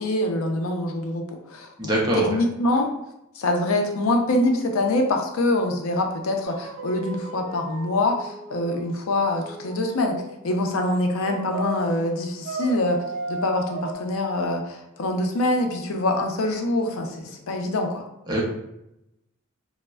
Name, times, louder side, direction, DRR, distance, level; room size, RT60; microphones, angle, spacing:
voice 1, 0.0-1.7 2.1-2.9 3.4-13.0 13.3-18.0, left 1 dB, 80° left, 3 dB, 0.4 m, -24 dB
voice 2, 1.8-2.4 18.3-18.4, right 1 dB, 20° right, -3 dB, 0.6 m, -23 dB
sound 1, 6.4-10.3 11.2-11.9 12.4-13.9, right 3 dB, 75° right, 0.3 m, -35 dB
3.2 x 2.0 x 2.2 m, 0.85 s
head